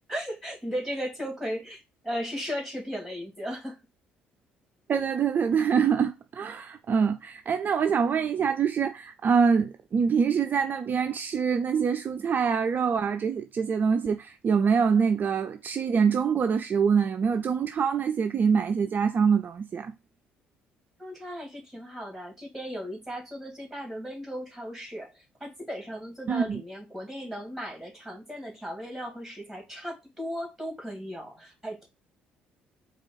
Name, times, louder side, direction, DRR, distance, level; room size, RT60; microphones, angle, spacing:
voice 1, 0.1-3.7 21.0-31.9, equal, ahead, 2.3 m, -36 dB
voice 2, 4.9-19.9 26.3-26.6, right 6 dB, 40° right, 0.4 m, -25 dB
4.4 x 2.4 x 4.1 m
figure-of-eight pair, 50°, 5 cm